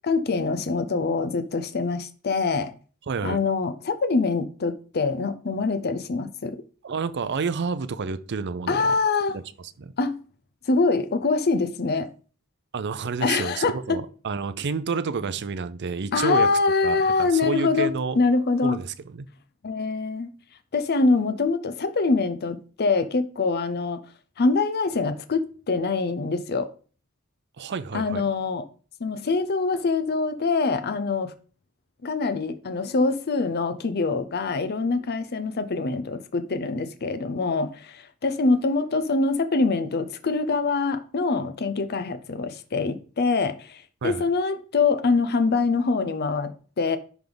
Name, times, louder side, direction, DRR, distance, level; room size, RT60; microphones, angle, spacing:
voice 1, 0.0-2.7 3.2-6.6 8.7-9.4 10.0-10.2 10.7-12.1 13.2-14.0 16.1-18.8 19.6-20.3 20.7-24.0 24.4-26.7 27.9-28.6 29.0-31.3 32.0-47.0, left 4 dB, 50° left, 0.6 m, -24 dB
voice 2, 3.1-3.4 6.8-8.9 9.3-9.4 9.8-9.9 12.7-16.5 16.8-18.2 18.6-19.3 27.6-28.2 44.0-44.3, right 5 dB, 55° right, 0.5 m, -29 dB
10.5 x 3.5 x 3.9 m
head